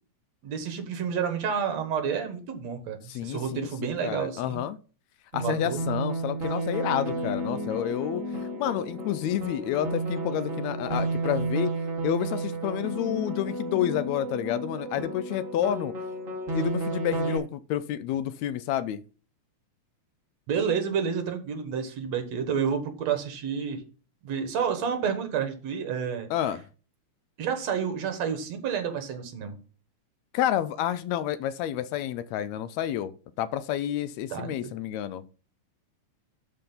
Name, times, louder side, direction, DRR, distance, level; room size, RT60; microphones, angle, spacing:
voice 1, 0.4-4.6 5.4-5.8 20.5-23.8 24.2-26.3 27.4-29.6 34.3-34.7, right 7 dB, 70° right, 2.5 m, -30 dB
voice 2, 3.1-4.8 5.3-8.2 8.6-11.7 12.0-15.9 16.5-19.0 26.3-26.6 30.3-33.1 33.4-35.2, left 11 dB, 80° left, 1.8 m, -29 dB
sound 1, 5.3-17.4, right 2 dB, 30° right, 1.9 m, -32 dB
12.5 x 4.4 x 3.9 m
omnidirectional pair, 3.3 m